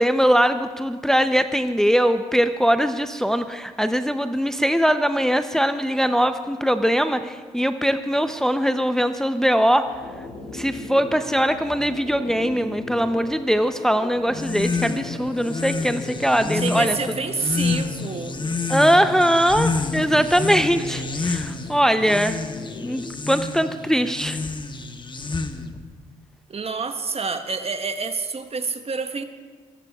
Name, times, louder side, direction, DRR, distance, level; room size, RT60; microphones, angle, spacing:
voice 1, 0.0-9.9 10.5-17.0 18.7-22.4 22.8-24.4, equal, 5° left, 9 dB, 0.7 m, -21 dB
sound 1, 9.8-23.0, left 3 dB, 80° left, 3.2 m, -39 dB
sound 2, 14.3-25.8, left 3 dB, 30° left, 1.2 m, -29 dB
voice 2, 16.5-18.4 26.5-29.2, right 4 dB, 40° right, 8 dB, 1.3 m, -28 dB
23.0 x 16.5 x 2.4 m, 1.5 s
hypercardioid pair, 40°, 16 cm